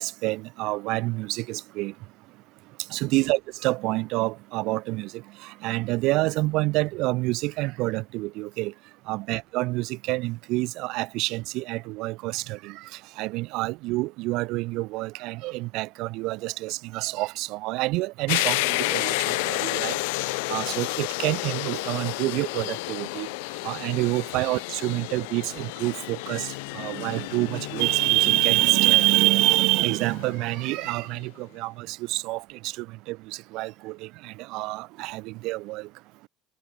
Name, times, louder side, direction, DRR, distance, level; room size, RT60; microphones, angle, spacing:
voice 1, 0.0-1.9 2.9-8.7 9.1-20.0 20.5-23.3 23.6-35.9, right 21 dB, 55° right, 0.7 m, -27 dB
sound 1, 18.3-31.0, left 29 dB, 80° left, 1.3 m, -31 dB
cardioid pair, 170°, 0 cm